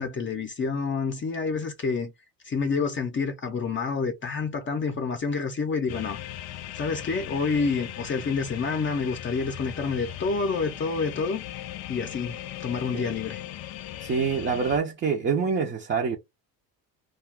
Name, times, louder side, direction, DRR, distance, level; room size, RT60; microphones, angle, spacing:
voice 1, 0.0-2.1 2.4-6.2 6.7-11.4 11.9-13.4, left 4 dB, 30° left, 0.6 m, -28 dB
sound 1, 5.9-14.8, left 13 dB, 75° left, 0.6 m, -38 dB
voice 2, 14.0-16.2, right 5 dB, 30° right, 0.6 m, -26 dB
2.3 x 2.3 x 3.5 m
supercardioid pair, 95°, 40 cm